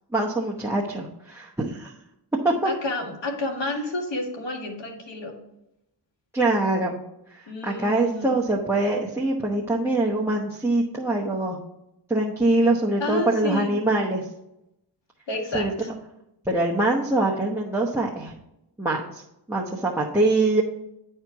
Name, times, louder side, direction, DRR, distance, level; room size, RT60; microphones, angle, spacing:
voice 1, 0.1-1.9 2.4-2.7 6.3-7.0 7.3-11.6 12.1-14.3 15.5-15.7 16.4-18.3 18.8-19.2 19.5-20.6, right 2 dB, 5° right, -1 dB, 1.0 m, -24 dB
voice 2, 2.6-5.4 7.5-8.4 13.0-13.7 15.3-15.9, left 1 dB, 85° left, 1 dB, 1.9 m, -30 dB
10.0 x 4.5 x 4.6 m, 0.84 s
wide cardioid pair, 120°, 42 cm